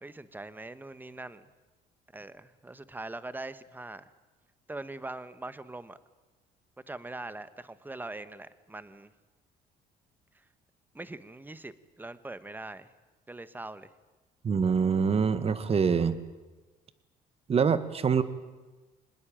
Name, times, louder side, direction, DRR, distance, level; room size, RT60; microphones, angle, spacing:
voice 1, 0.0-1.5 2.1-4.0 4.7-6.0 6.9-9.1 10.9-12.9 13.3-13.9, right 2 dB, 10° right, 14 dB, 1.3 m, -42 dB
voice 2, 14.4-16.2 17.5-18.2, right 6 dB, 35° right, 13 dB, 1.7 m, -25 dB
25.5 x 19.5 x 9.0 m, 1.2 s
cardioid pair, 110°, 17 cm